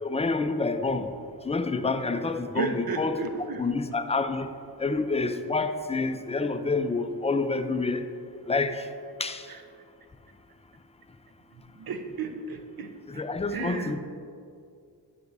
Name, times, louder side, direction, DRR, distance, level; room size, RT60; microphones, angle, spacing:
voice 1, 0.0-1.1 1.4-3.2 3.6-4.5 4.8-8.0 8.5-8.9 9.2-9.5 13.1-14.0, left 3 dB, 15° left, 9 dB, 0.5 m, -28 dB
voice 2, 2.5-3.7 9.5-9.6 11.5-13.2 13.5-13.9, right 4 dB, 55° right, 6 dB, 0.8 m, -34 dB
10.5 x 5.9 x 2.6 m, 2.3 s
supercardioid pair, 40°, 43 cm